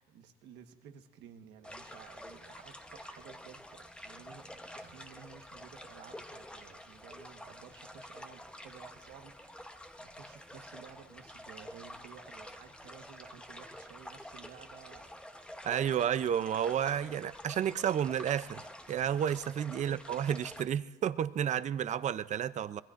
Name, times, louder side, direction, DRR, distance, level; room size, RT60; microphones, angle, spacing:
voice 1, 0.0-9.7 10.0-15.1 15.8-16.0 19.8-20.0, right 8 dB, 90° right, 1.3 m, -54 dB
sound 1, 1.6-20.6, left 1 dB, 5° left, 1.0 m, -49 dB
voice 2, 15.6-22.8, right 9 dB, 45° right, 0.5 m, -31 dB
25.5 x 21.0 x 2.5 m
cardioid pair, 110°, 17 cm